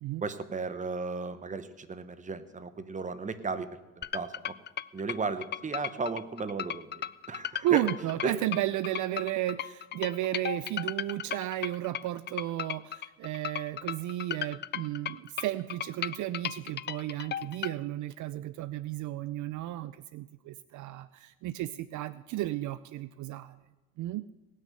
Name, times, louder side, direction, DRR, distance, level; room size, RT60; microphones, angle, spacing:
voice 1, 0.2-3.7 4.0-4.5 4.9-7.8 8.2-8.4, right 4 dB, 25° right, 12 dB, 1.0 m, -35 dB
sound 1, 4.0-17.7, left 10 dB, 35° left, 0.4 m, -36 dB
voice 2, 7.6-23.6 24.0-24.2, right 14 dB, 65° right, 16 dB, 0.5 m, -33 dB
18.0 x 6.5 x 7.8 m, 1.2 s
cardioid pair, 95°, 32 cm